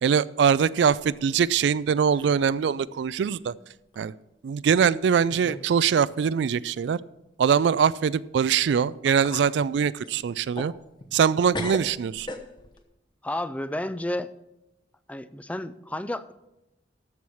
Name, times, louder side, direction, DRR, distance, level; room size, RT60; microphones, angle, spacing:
voice 1, 0.0-3.5 4.0-4.1 4.4-7.0 7.4-10.7 11.1-12.3, right 7 dB, 70° right, 19 dB, 0.3 m, -22 dB
sound 1, 1.0-1.8 2.1-2.5 3.0-3.1 3.9-4.1 4.8-4.9 5.3-5.7 6.0-6.1 8.6-8.7 9.1-9.6 10.0-11.3 11.5-12.8, left 2 dB, 25° left, 0.9 m, -38 dB
voice 2, 13.2-14.3 15.1-16.3, left 1 dB, 10° left, 14 dB, 0.4 m, -31 dB
13.5 x 4.7 x 7.0 m, 0.90 s
head